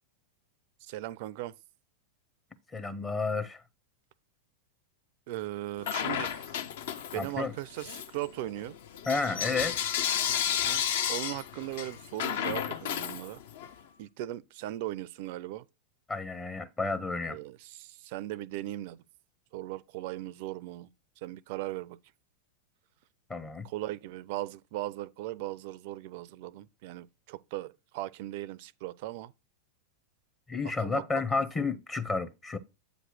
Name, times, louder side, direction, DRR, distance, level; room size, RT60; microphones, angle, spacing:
voice 1, 0.8-1.5 5.3-6.5 7.1-8.8 10.5-10.8 11.1-13.4 14.0-15.7 17.2-19.0 19.5-20.9 21.2-22.0 23.6-29.3 30.8-31.0 31.3-31.4, right 15 dB, 50° right, 0.4 m, -38 dB
voice 2, 2.7-3.6 7.1-7.5 9.1-9.8 16.1-17.4 23.3-23.7 30.5-32.6, left 4 dB, 20° left, 0.7 m, -31 dB
Bell / Coin (dropping), 5.8-7.4 7.8-13.7, left 9 dB, 55° left, 0.6 m, -32 dB
7.9 x 3.0 x 5.9 m
figure-of-eight pair, 90°, 0 cm